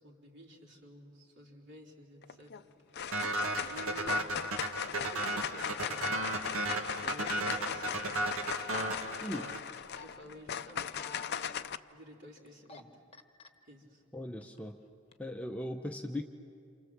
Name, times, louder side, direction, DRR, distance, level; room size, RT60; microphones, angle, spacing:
voice 1, 0.0-3.4 3.7-4.3 4.9-6.6 7.0-8.2 9.3-9.6 10.0-11.6 11.9-12.9 13.6-14.0, equal, 55° right, -1 dB, 3.9 m, -51 dB
sound 1, 2.2-2.6 2.9-11.8, left 8 dB, 50° left, 0.5 m, -38 dB
sound 2, 3.1-9.8, right 2 dB, 80° right, 1.7 m, -34 dB
sound 3, 9.7-10.1 10.7-11.3 12.5-12.8 13.1-13.5 14.2-14.7 15.1-15.2, left 6 dB, 30° left, 1.1 m, -49 dB
voice 2, 14.1-14.8 15.2-16.2, left 1 dB, 5° left, 3 dB, 0.8 m, -38 dB
28.0 x 28.0 x 7.3 m, 2.5 s
head